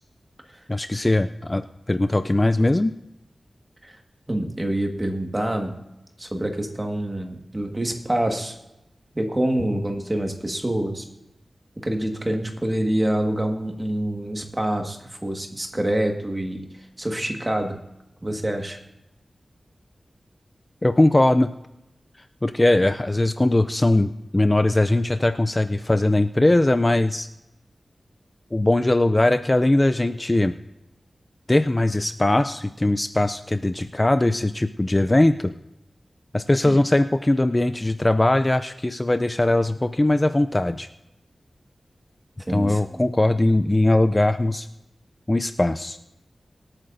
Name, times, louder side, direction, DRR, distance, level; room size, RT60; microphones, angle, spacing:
voice 1, 0.7-2.9 20.8-21.5 22.4-27.3 28.5-30.6 31.5-35.5 36.3-40.9 42.5-44.7 45.3-46.0, left 1 dB, 20° left, 10 dB, 0.4 m, -20 dB
voice 2, 4.3-5.7 6.2-8.6 9.1-11.0 11.8-16.7 17.0-17.8 18.2-18.8 36.6-36.8 42.5-43.1, right 1 dB, 20° right, 3 dB, 1.6 m, -26 dB
25.0 x 8.8 x 2.6 m, 0.90 s
wide cardioid pair, 95°, 0 cm